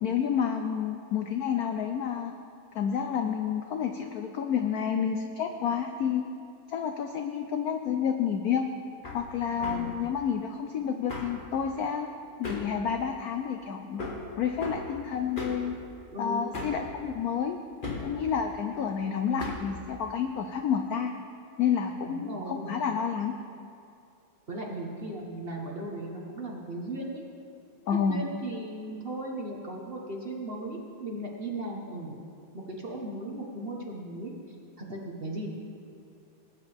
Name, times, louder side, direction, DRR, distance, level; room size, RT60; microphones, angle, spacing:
voice 1, 0.0-2.3 2.7-6.3 6.7-8.7 9.1-12.1 12.4-14.1 14.4-15.8 16.2-17.6 18.0-21.1 21.6-23.3 27.9-28.2, left 7 dB, 75° left, 6 dB, 0.8 m, -29 dB
Hammer, 9.0-9.2 9.6-9.9 11.1-11.4 12.4-12.7 14.0-14.2 14.6-14.8 15.4-15.7 16.5-16.8 17.8-18.1 19.4-19.7, left 3 dB, 30° left, 1.3 m, -36 dB
voice 2, 9.6-9.9 16.1-16.5 22.1-22.8 24.5-27.2 27.9-32.2 32.5-35.5, right 1 dB, 35° right, -2 dB, 1.2 m, -37 dB
20.0 x 9.2 x 3.5 m, 2.5 s
omnidirectional pair, 2.2 m